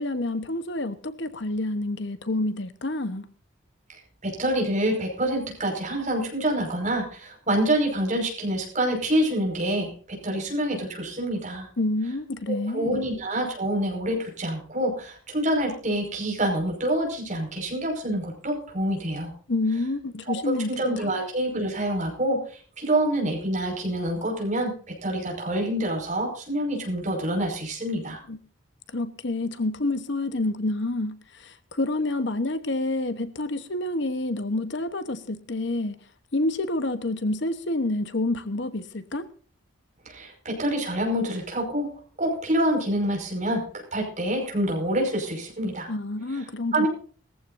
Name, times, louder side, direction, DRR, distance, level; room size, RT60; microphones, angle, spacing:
voice 1, 0.0-3.3 11.8-13.0 19.5-20.7 28.3-28.4 28.9-36.0 36.3-39.3 45.9-46.9, left 2 dB, 60° left, 12 dB, 1.1 m, -28 dB
voice 2, 3.9-11.7 12.5-19.3 20.3-28.2 40.1-41.9 42.2-45.9 46.3-46.4 46.7-46.9, right 1 dB, 35° right, 2 dB, 5.4 m, -27 dB
20.5 x 14.5 x 2.6 m, 0.42 s
head